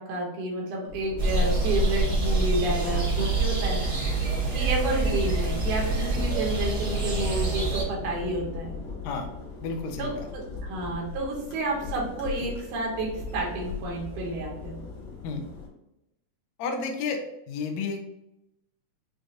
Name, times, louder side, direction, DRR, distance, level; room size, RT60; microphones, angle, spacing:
voice 1, 0.0-3.9 4.5-8.8 10.0-14.8, right 2 dB, 80° right, -1 dB, 2.3 m, -30 dB
sound 1, 0.9-15.7, left 4 dB, 70° left, 1.8 m, -38 dB
sound 2, 1.2-7.8, right 3 dB, 55° right, 1.1 m, -26 dB
voice 2, 9.6-10.3 15.2-15.5 16.6-18.1, left 4 dB, 90° left, 4 dB, 1.5 m, -32 dB
6.1 x 2.3 x 2.6 m, 0.87 s
omnidirectional pair, 3.6 m